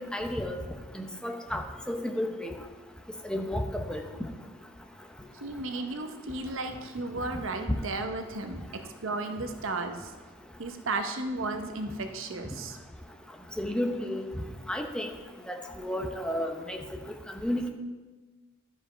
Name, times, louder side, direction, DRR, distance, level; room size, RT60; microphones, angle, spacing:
voice 1, 0.1-0.6 0.9-2.6 3.2-4.0 13.6-14.2 14.7-15.1 15.5-16.8 17.4-17.7, left 1 dB, 5° left, 4 dB, 0.7 m, -32 dB
voice 2, 5.4-10.1 10.6-12.8, right 2 dB, 70° right, 6 dB, 0.8 m, -34 dB
12.0 x 5.0 x 5.0 m, 1.3 s
head